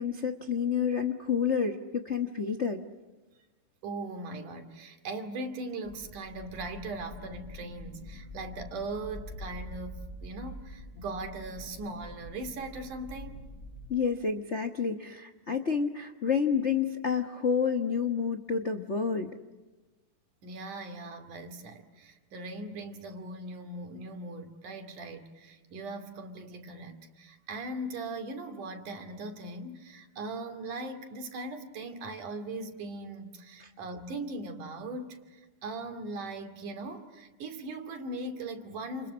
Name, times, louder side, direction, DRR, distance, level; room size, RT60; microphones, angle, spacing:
voice 1, 0.0-2.8 13.9-19.3, left 6 dB, 80° left, 0.6 m, -29 dB
voice 2, 3.8-13.4 20.4-39.1, right 2 dB, 90° right, 4.0 m, -39 dB
sound 1, 5.8-14.0, left 1 dB, 15° left, 4.2 m, -45 dB
29.5 x 28.5 x 6.4 m
omnidirectional pair, 3.5 m